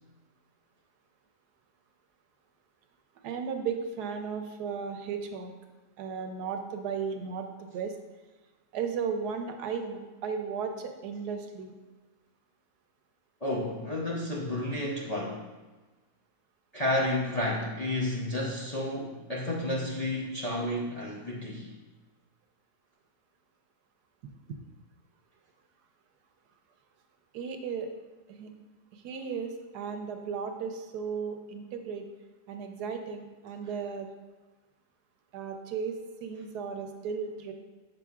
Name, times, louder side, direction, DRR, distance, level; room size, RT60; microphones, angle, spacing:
voice 1, 3.2-5.5 6.0-7.9 8.7-11.7 24.5-24.6 27.3-27.9 28.3-28.5 28.9-32.1 32.5-34.1 35.3-35.9 36.2-37.5, right 6 dB, 85° right, 5 dB, 1.2 m, -35 dB
voice 2, 13.4-15.5 16.7-21.7, left 1 dB, 50° left, -5 dB, 0.4 m, -31 dB
6.9 x 5.7 x 2.4 m, 1.2 s
omnidirectional pair, 1.7 m